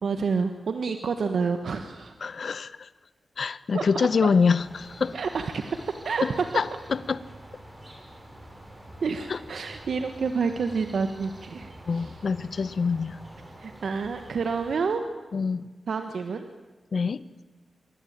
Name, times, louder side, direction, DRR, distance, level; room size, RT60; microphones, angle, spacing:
voice 1, 0.0-2.1 3.7-4.3 5.1-6.5 9.0-12.1 13.6-15.1 15.9-16.5, right 5 dB, 80° right, 7 dB, 1.5 m, -29 dB
voice 2, 2.2-2.9 3.4-5.2 6.2-7.2 9.3-9.4 11.9-13.2 15.3-15.6 16.9-17.2, left 5 dB, 65° left, 16 dB, 1.0 m, -25 dB
sound 1, 4.6-14.8, right 1 dB, 25° right, 6.9 m, -47 dB
26.0 x 23.5 x 9.1 m, 1.3 s
wide cardioid pair, 105°, 0 cm